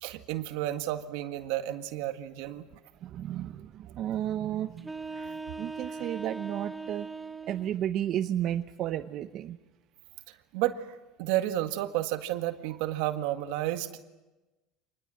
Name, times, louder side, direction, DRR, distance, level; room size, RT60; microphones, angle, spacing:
voice 1, 0.0-2.7 5.2-5.3 10.3-10.9 11.2-14.0, right 14 dB, 75° right, 7 dB, 1.8 m, -31 dB
voice 2, 3.0-4.9 5.6-7.1 7.5-9.6, right 11 dB, 50° right, 8 dB, 0.9 m, -32 dB
sound 1, 4.8-7.8, right 4 dB, 10° right, 0.8 m, -39 dB
26.0 x 20.5 x 7.8 m, 1.1 s
supercardioid pair, 125°, 0 cm